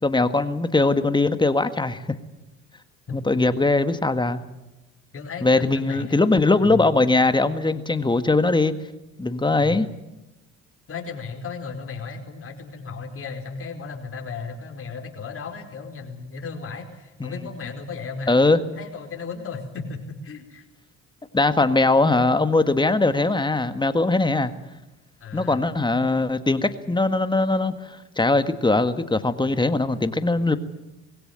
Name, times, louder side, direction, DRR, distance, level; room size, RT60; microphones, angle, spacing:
voice 1, 0.0-2.2 3.1-4.4 5.4-8.7 9.2-9.9 18.3-18.6 21.3-24.5 25.3-30.6, left 2 dB, 15° left, 10 dB, 1.7 m, -21 dB
voice 2, 5.1-6.9 9.6-9.8 10.9-20.6 25.2-25.6, left 5 dB, 45° left, 3 dB, 4.8 m, -35 dB
21.5 x 16.5 x 9.6 m, 1.0 s
supercardioid pair, 80°, 32 cm